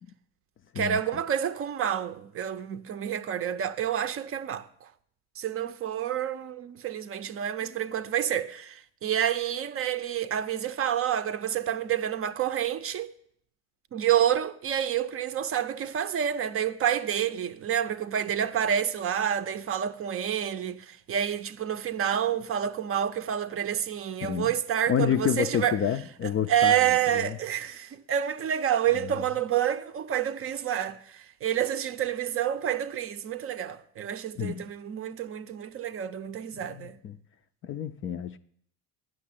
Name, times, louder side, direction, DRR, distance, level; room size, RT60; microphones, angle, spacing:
voice 1, 0.8-4.9 5.4-13.1 13.9-25.8 26.5-37.0, right 9 dB, 35° right, 0.6 m, -28 dB
voice 2, 24.2-24.5 24.9-27.4 29.0-29.1 34.4-34.7 36.5-37.2 37.6-38.4, left 9 dB, 30° left, 0.4 m, -29 dB
9.0 x 6.3 x 8.6 m
supercardioid pair, 105°, 41 cm